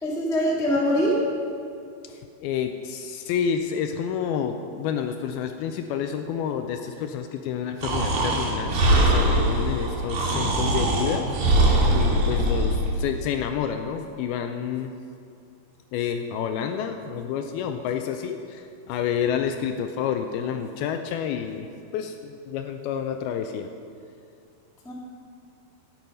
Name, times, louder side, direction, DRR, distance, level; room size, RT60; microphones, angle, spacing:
voice 1, 0.0-1.3 24.8-24.9, equal, 5° left, -5 dB, 0.6 m, -23 dB
voice 2, 2.0-14.9 15.9-21.7 21.9-23.7, left 8 dB, 80° left, 6 dB, 2.3 m, -29 dB
Breathing, 7.8-12.9, right 1 dB, 70° right, 3.8 m, -22 dB
12.5 x 9.1 x 5.4 m, 2.4 s
omnidirectional pair, 4.7 m